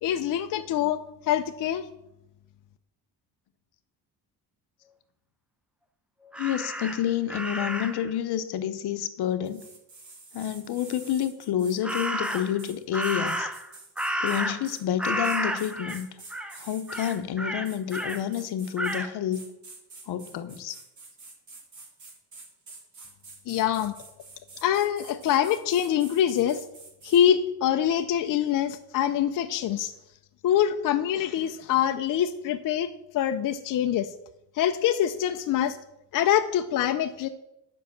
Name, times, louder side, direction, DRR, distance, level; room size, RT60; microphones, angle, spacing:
voice 1, 0.0-1.9 23.5-23.9 24.6-26.6 27.0-29.9 30.4-34.1 34.5-35.8 36.1-37.3, left 10 dB, 50° left, 6 dB, 0.6 m, -25 dB
Crow, 6.3-8.1 11.8-12.6 12.9-14.7 15.0-16.0 16.3-16.6 16.9-18.2 18.8-19.1, equal, 5° right, 0.4 m, -31 dB
voice 2, 6.4-9.6 10.3-13.5 14.2-16.1 16.6-19.4 20.1-20.8, left 10 dB, 70° left, 11 dB, 0.9 m, -29 dB
sound 1, 9.4-17.2 17.6-19.0 19.3-27.2, right 3 dB, 45° right, 2.4 m, -48 dB
10.0 x 5.6 x 7.2 m, 0.86 s
cardioid pair, 165°, 41 cm